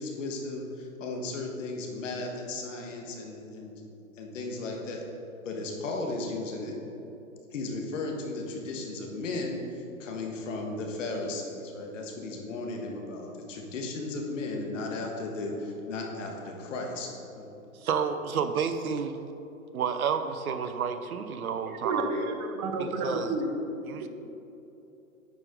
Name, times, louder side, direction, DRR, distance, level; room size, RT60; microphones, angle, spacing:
voice 1, 0.0-3.7 4.2-5.0 5.4-6.7 7.5-9.6 10.0-17.5, left 2 dB, 60° left, 1 dB, 1.5 m, -35 dB
voice 2, 17.8-19.1 19.7-22.1 22.6-23.4 23.9-24.1, right 6 dB, 85° right, 9 dB, 0.7 m, -30 dB
voice 3, 21.8-23.5 24.0-24.1, right 2 dB, 35° right, 3 dB, 0.9 m, -31 dB
9.4 x 5.0 x 3.7 m, 3.0 s
hypercardioid pair, 130°, 42 cm